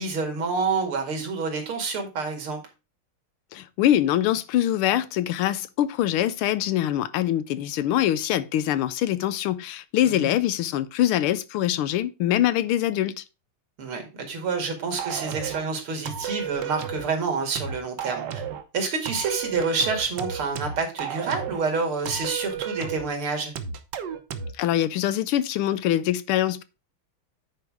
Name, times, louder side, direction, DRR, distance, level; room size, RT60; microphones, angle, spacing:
voice 1, 0.0-2.6 10.1-10.3 13.8-18.4 18.7-23.5, right 4 dB, 85° right, 2.9 m, -28 dB
voice 2, 3.5-13.2 24.6-26.6, left 12 dB, 90° left, 1.6 m, -24 dB
sound 1, 15.0-15.6 16.1-17.1 17.6-18.6 19.1-21.6 22.1-23.1 23.6-24.6, right 8 dB, 65° right, 1.4 m, -33 dB
9.3 x 4.8 x 4.7 m
omnidirectional pair, 2.3 m